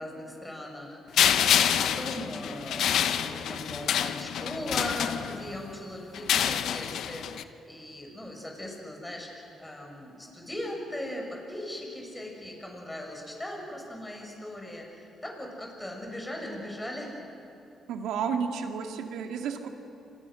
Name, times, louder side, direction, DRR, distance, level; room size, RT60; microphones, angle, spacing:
voice 1, 0.0-17.1, left 1 dB, 10° left, 0 dB, 6.6 m, -39 dB
sound 1, 1.2-5.6 6.1-7.4, left 9 dB, 75° left, 1.0 m, -27 dB
voice 2, 17.9-19.7, right 6 dB, 85° right, 4 dB, 2.4 m, -31 dB
27.5 x 25.0 x 6.5 m, 2.9 s
cardioid pair, 90°, 0 cm